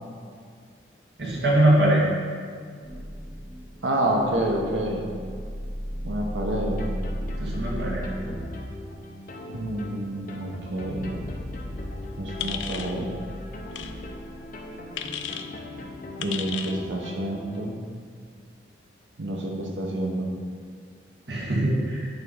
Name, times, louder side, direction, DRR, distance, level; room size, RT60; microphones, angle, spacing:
voice 1, 1.2-2.0 7.4-8.1 21.3-22.1, right 1 dB, 65° right, -4 dB, 2.0 m, -22 dB
sound 1, 2.8-8.4, equal, 15° left, 1.3 m, -34 dB
voice 2, 3.8-5.0 6.0-6.8 9.5-11.1 12.2-13.1 16.2-17.8 19.2-20.3, right 1 dB, 90° right, 0 dB, 1.0 m, -28 dB
sound 2, 6.6-17.8, left 1 dB, 45° left, 0.8 m, -39 dB
sound 3, 12.4-12.9 13.7-13.9 15.0-15.5 16.2-16.8, left 9 dB, 85° left, 0.5 m, -33 dB
9.1 x 3.6 x 5.5 m, 2.1 s
head